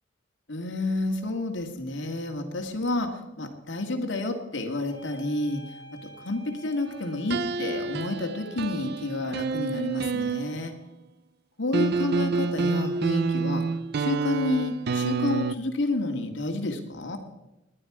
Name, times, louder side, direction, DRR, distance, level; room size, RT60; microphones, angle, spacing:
voice 1, 0.5-5.6 5.9-10.7 11.6-13.6 14.0-17.2, left 2 dB, 75° left, 4 dB, 1.9 m, -30 dB
sound 1, 4.9-9.1, right 2 dB, 25° left, 6.4 m, -48 dB
sound 2, 7.3-10.8 11.7-15.6, right 4 dB, 55° right, 0.5 m, -28 dB
19.5 x 10.0 x 4.9 m, 0.97 s
head